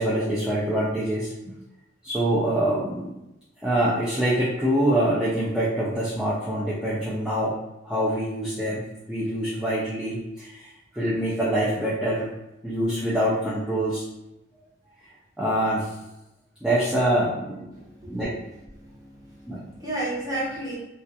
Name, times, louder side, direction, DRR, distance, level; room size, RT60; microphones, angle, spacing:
voice 1, 0.0-1.5 2.0-3.1 3.6-7.5 7.8-8.8 9.1-12.3 12.6-14.0 15.4-15.9 16.6-17.6 18.1-18.3 19.5-19.6, right 1 dB, 5° right, -9 dB, 0.3 m, -25 dB
voice 2, 17.6-18.3 18.7-20.8, right 1 dB, 20° right, -7 dB, 0.8 m, -33 dB
2.3 x 2.2 x 2.6 m, 0.93 s
head